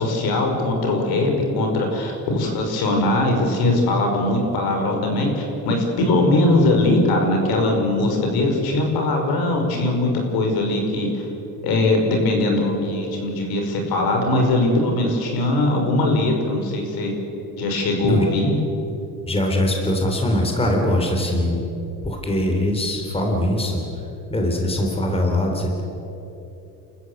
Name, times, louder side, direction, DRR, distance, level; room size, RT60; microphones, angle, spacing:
voice 1, 0.0-11.2 11.6-17.1 17.6-18.5, left 2 dB, 70° left, 2 dB, 5.4 m, -20 dB
voice 2, 19.3-21.6 22.0-23.8 24.3-25.8, left 1 dB, 15° left, 2 dB, 3.6 m, -22 dB
28.5 x 14.5 x 8.2 m, 3.0 s
cardioid pair, 120°, 38 cm